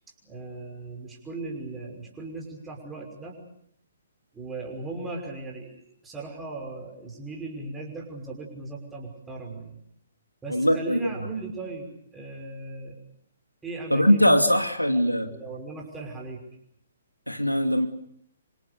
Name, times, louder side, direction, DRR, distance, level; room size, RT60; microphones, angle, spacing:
voice 1, 0.2-3.4 4.3-5.8 6.0-9.8 10.4-13.0 13.6-14.4 14.9-16.4, right 3 dB, 10° right, 0 dB, 5.7 m, -38 dB
voice 2, 10.5-11.0 13.9-15.3 17.3-17.9, equal, 90° left, 7 dB, 2.7 m, -21 dB
28.0 x 26.0 x 6.8 m, 0.68 s
figure-of-eight pair, 125°, 0 cm